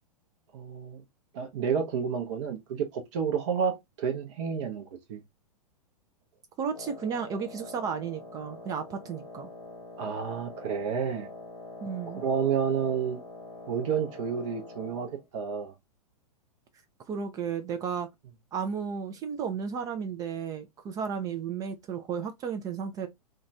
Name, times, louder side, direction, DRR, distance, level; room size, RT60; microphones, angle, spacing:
voice 1, 0.5-1.0 1.3-5.2 10.0-11.3 12.2-13.2 13.7-15.7, right 7 dB, 50° right, 0.7 m, -30 dB
voice 2, 6.6-9.5 11.8-12.2 17.1-18.1 18.5-23.1, right 6 dB, 20° right, 0.3 m, -33 dB
Wind instrument woodwind instrument, 6.7-15.3, left 3 dB, 90° left, 1.0 m, -45 dB
2.8 x 2.3 x 2.6 m
figure-of-eight pair, 105°, 20 cm